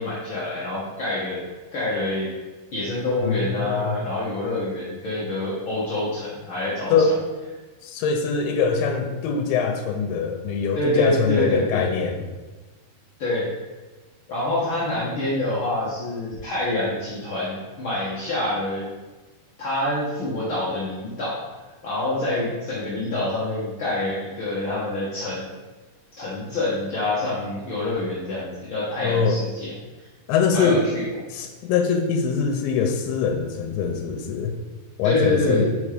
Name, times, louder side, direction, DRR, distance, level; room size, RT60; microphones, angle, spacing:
voice 1, 0.0-1.4 1.7-2.3 2.7-7.1 10.7-11.8 13.2-13.5 14.3-18.9 19.6-21.4 21.8-25.5 26.1-29.7 30.5-31.0 35.0-35.6, left 1 dB, 75° left, -8 dB, 1.1 m, -26 dB
voice 2, 3.2-4.0 6.9-7.1 7.8-12.2 29.0-29.4 30.3-30.8 31.3-34.6 35.0-35.7, left 5 dB, 90° left, 4 dB, 2.6 m, -23 dB
5.4 x 5.4 x 4.9 m, 1.2 s
omnidirectional pair, 4.4 m